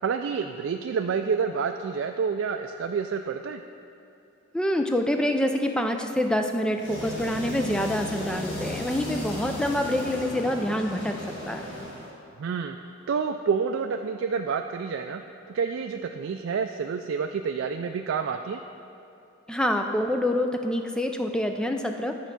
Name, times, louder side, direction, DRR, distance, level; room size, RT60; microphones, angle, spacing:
voice 1, 0.0-3.6 12.4-12.8 13.1-15.2 15.5-18.6, right 6 dB, 75° right, 5 dB, 0.3 m, -28 dB
voice 2, 4.5-11.6 19.5-22.2, left 1 dB, 5° left, 5 dB, 0.4 m, -26 dB
sound 1, 6.7-12.1, left 1 dB, 60° left, 2.0 m, -35 dB
10.5 x 4.5 x 5.9 m, 2.8 s
head